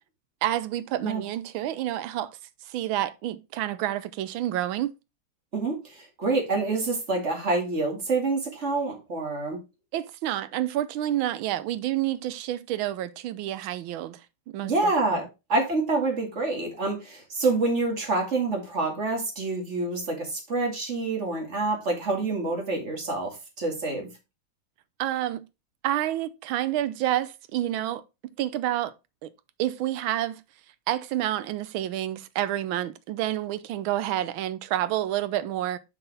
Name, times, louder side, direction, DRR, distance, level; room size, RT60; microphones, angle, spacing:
voice 1, 0.4-2.4 2.6-4.9 9.9-14.9 25.0-25.4 25.8-28.0 28.4-28.9 29.2-29.3 29.6-30.4 30.9-35.8, right 13 dB, 75° right, 1.4 m, -29 dB
voice 2, 5.5-9.6 14.6-24.1, right 3 dB, 35° right, 2.3 m, -27 dB
6.9 x 5.7 x 3.4 m
omnidirectional pair, 2.3 m